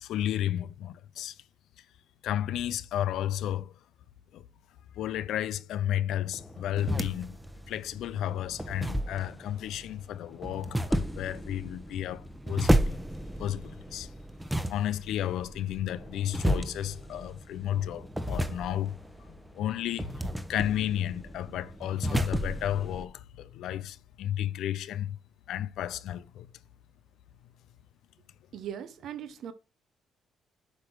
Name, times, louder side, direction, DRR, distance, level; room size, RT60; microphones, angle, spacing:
voice 1, 0.0-1.4 2.2-3.7 4.3-4.4 4.9-7.4 7.7-13.0 13.4-14.1 14.7-20.1 20.5-25.2 25.5-26.5, left 11 dB, 80° left, 0.6 m, -32 dB
sound 1, 6.3-23.0, right 1 dB, 5° right, 1.0 m, -33 dB
voice 2, 28.5-29.5, right 9 dB, 70° right, 1.1 m, -39 dB
8.3 x 3.7 x 6.2 m
cardioid pair, 90°, 0 cm